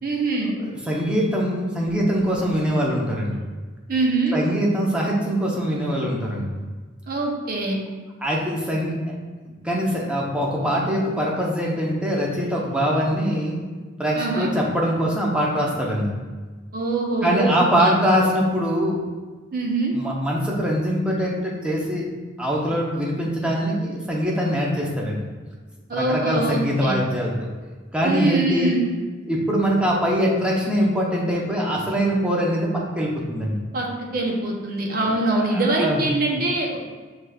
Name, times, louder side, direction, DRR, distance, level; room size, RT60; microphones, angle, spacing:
voice 1, 0.0-0.5 3.9-4.4 7.1-7.8 14.1-14.5 16.7-18.0 19.5-19.9 25.9-27.0 28.0-28.9 33.7-36.8, right 2 dB, 55° right, 0 dB, 0.8 m, -23 dB
voice 2, 0.6-3.3 4.3-6.5 8.2-9.1 9.6-13.6 14.0-16.1 17.2-19.0 19.9-22.1 22.4-25.2 25.9-27.5 27.9-28.7 29.3-33.6 35.0-36.0, equal, 5° right, -4 dB, 0.7 m, -23 dB
6.4 x 3.2 x 2.4 m, 1.4 s
head